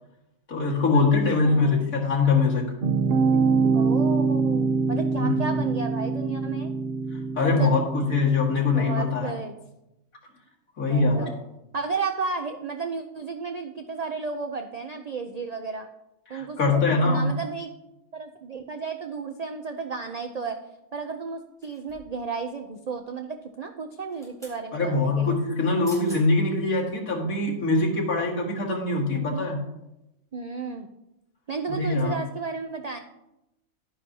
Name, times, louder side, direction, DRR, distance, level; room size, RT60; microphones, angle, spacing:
voice 1, 0.5-2.7 5.2-5.6 7.4-9.4 10.8-11.3 16.3-17.3 24.7-29.6 31.8-32.1, left 3 dB, 85° left, -3 dB, 2.4 m, -23 dB
voice 2, 1.4-2.0 3.7-6.7 7.4-7.8 8.7-9.5 10.9-11.3 11.7-15.9 16.3-17.7 18.1-20.6 20.9-25.4 29.1-29.5 30.3-30.9 31.5-33.0, right 4 dB, 80° right, 5 dB, 0.3 m, -33 dB
sound 1, 2.8-8.3, right 4 dB, 50° right, 0.9 m, -24 dB
sound 2, 21.6-22.2 23.9-24.6 25.6-25.7 25.8-26.2 26.8-26.9, equal, ahead, 4.0 m, -47 dB
11.0 x 9.8 x 2.8 m, 0.89 s
omnidirectional pair, 1.4 m